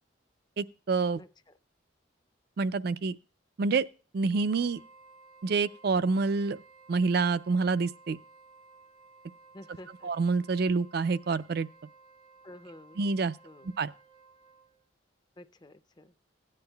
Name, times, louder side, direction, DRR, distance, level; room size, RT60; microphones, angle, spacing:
voice 1, 0.6-1.2 2.6-3.2 3.6-3.9 4.1-4.8 5.4-6.6 6.9-8.2 10.0-11.7 13.0-13.3 13.8-13.9, right 4 dB, 55° right, 0.4 m, -27 dB
Wind instrument woodwind instrument, 4.3-14.8, right 3 dB, 85° right, 2.1 m, -57 dB
voice 2, 9.5-10.1 12.4-13.0 13.4-13.7 15.4-16.1, left 1 dB, 20° left, 0.5 m, -50 dB
16.5 x 9.7 x 2.3 m
head